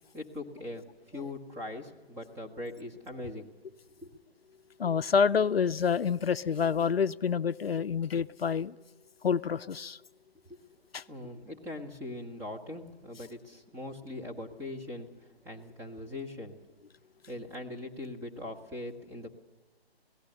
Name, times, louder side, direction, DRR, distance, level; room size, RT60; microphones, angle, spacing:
voice 1, 0.1-3.5 4.0-4.1 10.5-10.6 11.1-16.6 17.3-19.3, left 2 dB, 10° right, 0 dB, 1.4 m, -41 dB
voice 2, 4.8-8.8 9.2-10.0 10.9-11.0, left 6 dB, 70° left, 13 dB, 0.6 m, -27 dB
28.0 x 18.0 x 6.7 m, 1.2 s
figure-of-eight pair, 145°, 31 cm